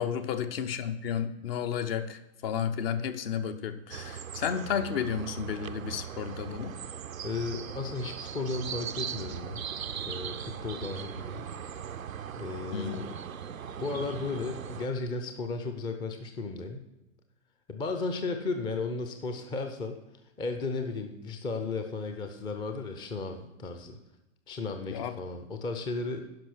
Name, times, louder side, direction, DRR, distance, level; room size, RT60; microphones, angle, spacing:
voice 1, 0.0-6.7 12.7-13.1 24.9-25.1, left 8 dB, 45° left, 10 dB, 0.8 m, -32 dB
sound 1, 3.9-14.9, right 8 dB, 85° right, 0.5 m, -39 dB
voice 2, 7.2-9.6 10.1-11.4 12.4-13.2 13.8-16.8 17.7-20.0 20.4-24.0 24.5-26.2, left 3 dB, 10° left, 6 dB, 0.5 m, -34 dB
10.5 x 5.7 x 6.1 m, 0.96 s
figure-of-eight pair, 105°, 40 cm